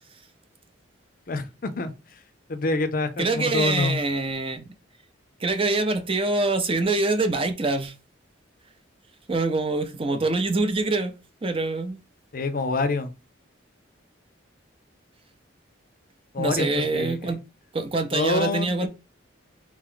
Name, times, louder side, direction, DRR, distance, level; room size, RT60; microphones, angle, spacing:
voice 1, 1.3-1.9 2.5-4.0 12.3-13.1 16.3-17.3 18.1-18.9, left 3 dB, 45° left, 0.5 m, -26 dB
voice 2, 3.2-4.7 5.4-7.9 9.3-11.1 11.4-12.0 16.4-17.4 17.7-18.9, right 3 dB, 30° right, 0.6 m, -25 dB
3.7 x 3.1 x 3.8 m
head